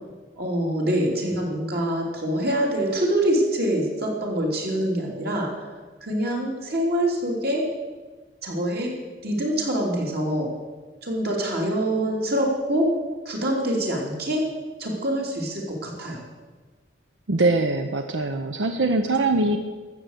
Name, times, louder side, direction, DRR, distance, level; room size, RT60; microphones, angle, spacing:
voice 1, 0.4-5.5 6.0-7.7 8.4-8.9 9.2-10.5 11.0-12.9 13.2-14.4 14.8-16.2, right 1 dB, 55° right, -1 dB, 3.2 m, -25 dB
voice 2, 17.3-19.6, right 2 dB, 85° right, 7 dB, 0.8 m, -22 dB
13.0 x 7.7 x 8.2 m, 1.3 s
head